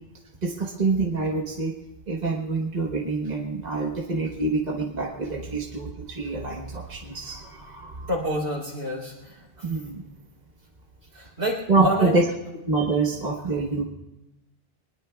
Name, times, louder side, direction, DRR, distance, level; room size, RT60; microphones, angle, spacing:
voice 1, 0.4-1.7 2.1-8.1 9.6-10.1 11.7-12.3 12.7-13.8, right 3 dB, 40° right, 0 dB, 1.3 m, -26 dB
voice 2, 8.1-9.7 11.1-12.2, equal, 65° right, -1 dB, 4.0 m, -28 dB
23.0 x 20.5 x 2.3 m, 0.97 s
omnidirectional pair, 1.1 m